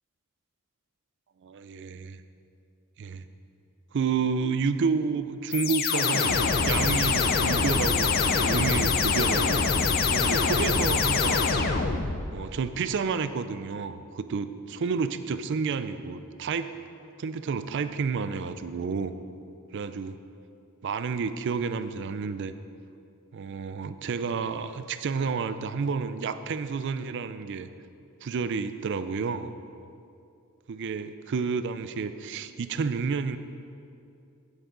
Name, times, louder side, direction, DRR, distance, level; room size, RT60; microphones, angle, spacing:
voice 1, 1.4-2.2 3.0-3.2 3.9-9.6 10.1-11.6 12.3-16.7 17.2-19.1 19.7-20.2 20.8-22.5 23.3-27.7 28.2-29.5 30.7-33.4, right 5 dB, 55° right, 11 dB, 0.4 m, -30 dB
sound 1, 5.5-12.3, left 4 dB, 45° left, 0.5 m, -24 dB
9.3 x 8.3 x 3.8 m, 2.5 s
head